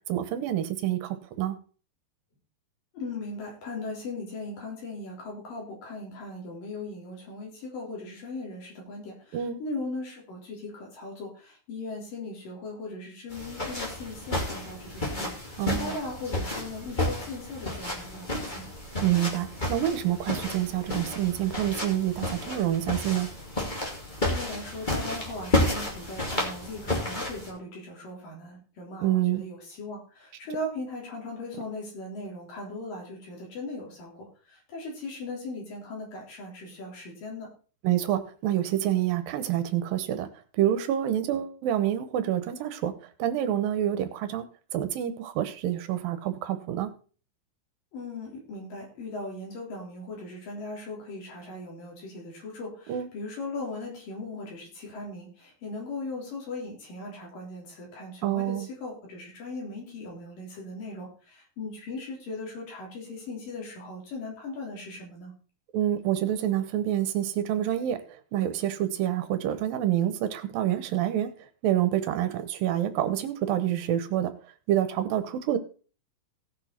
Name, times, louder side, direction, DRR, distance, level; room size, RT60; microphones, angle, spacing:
voice 1, 0.1-1.6 9.3-9.6 15.6-15.9 19.0-23.4 29.0-29.4 37.8-40.3 40.6-42.9 43.2-44.5 44.7-46.9 52.9-53.1 58.2-58.7 65.7-68.0 68.3-71.3 71.6-74.3 74.7-75.6, right 12 dB, 80° right, 10 dB, 2.7 m, -27 dB
voice 2, 2.9-18.7 24.3-37.5 47.9-65.3, left 2 dB, 70° left, -1 dB, 5.1 m, -38 dB
sound 1, 13.3-27.5, left 1 dB, 15° left, 2.0 m, -31 dB
17.0 x 6.2 x 4.4 m, 0.38 s
omnidirectional pair, 4.1 m